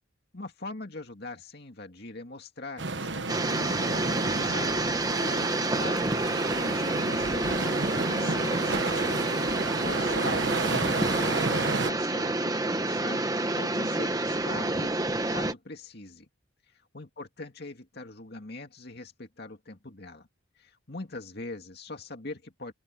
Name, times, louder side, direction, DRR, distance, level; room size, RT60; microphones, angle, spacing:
voice 1, 0.3-9.2 9.6-15.0 15.3-16.3 16.7-20.3 20.6-22.7, left 2 dB, 50° left, 2.4 m, -42 dB
sound 1, 2.8-11.9, right 3 dB, 60° right, 1.3 m, -32 dB
sound 2, 3.3-15.5, right 2 dB, 20° right, 1.2 m, -28 dB
open air
head